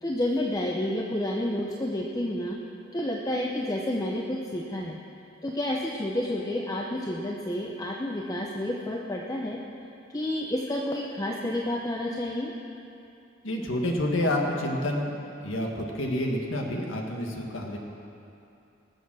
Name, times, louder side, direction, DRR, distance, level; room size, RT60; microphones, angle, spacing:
voice 1, 0.0-2.6 2.9-5.0 5.4-9.6 10.1-12.5, left 1 dB, 20° left, -1 dB, 0.7 m, -30 dB
voice 2, 13.4-15.1 15.4-17.8, left 1 dB, 80° left, 1 dB, 1.6 m, -28 dB
20.0 x 7.2 x 6.2 m, 2.8 s
head